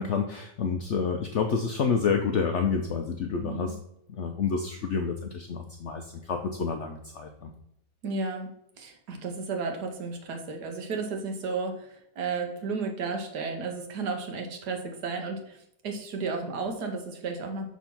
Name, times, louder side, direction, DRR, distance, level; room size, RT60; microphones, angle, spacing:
voice 1, 0.0-3.7 4.1-7.5, left 5 dB, 70° left, 5 dB, 0.6 m, -29 dB
voice 2, 3.4-3.7 8.0-8.5 8.8-17.7, right 4 dB, 75° right, 4 dB, 1.6 m, -33 dB
6.2 x 3.6 x 5.8 m, 0.75 s
omnidirectional pair, 1.8 m